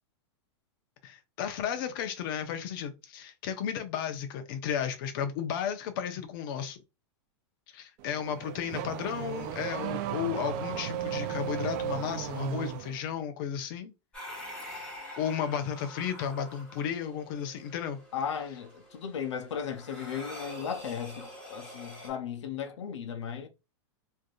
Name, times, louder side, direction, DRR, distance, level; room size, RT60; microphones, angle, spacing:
voice 1, 1.0-6.8 7.7-13.9 15.2-18.0, left 8 dB, 45° left, 0.7 m, -33 dB
Car / Accelerating revving vroom, 8.0-13.0, right 10 dB, 40° right, 0.4 m, -35 dB
sound 1, 14.1-22.1, left 1 dB, 5° left, 1.7 m, -46 dB
voice 2, 18.1-23.5, left 7 dB, 90° left, 0.7 m, -36 dB
3.3 x 2.6 x 2.4 m
supercardioid pair, 155°, 15 cm